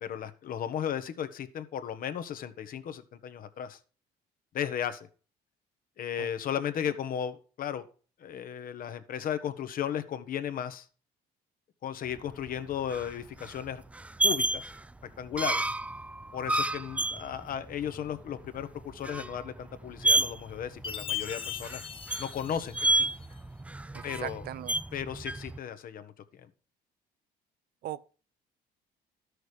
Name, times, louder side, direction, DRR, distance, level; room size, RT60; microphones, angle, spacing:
voice 1, 0.0-3.8 4.5-5.1 6.0-7.9 8.2-10.9 11.8-13.8 14.2-14.7 15.2-15.6 16.3-21.8 22.2-23.1 24.0-24.5 24.9-26.5, left 9 dB, 55° left, 1.3 m, -35 dB
sound 1, 12.2-25.6, right 2 dB, 10° right, 0.4 m, -31 dB
Chime, 20.8-23.3, left 9 dB, 30° left, 1.3 m, -39 dB
voice 2, 23.9-24.7 27.8-28.1, right 13 dB, 65° right, 0.6 m, -39 dB
12.5 x 6.5 x 4.9 m
cardioid pair, 110°, 17 cm